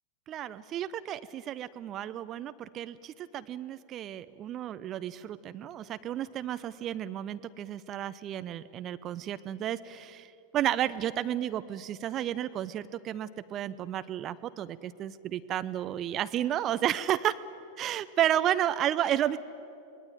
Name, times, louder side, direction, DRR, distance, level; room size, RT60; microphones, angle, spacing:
voice 1, 0.3-17.3 17.8-19.4, right 11 dB, 30° right, 13 dB, 0.7 m, -32 dB
26.0 x 21.0 x 9.2 m, 2.7 s
figure-of-eight pair, 90°, 0 cm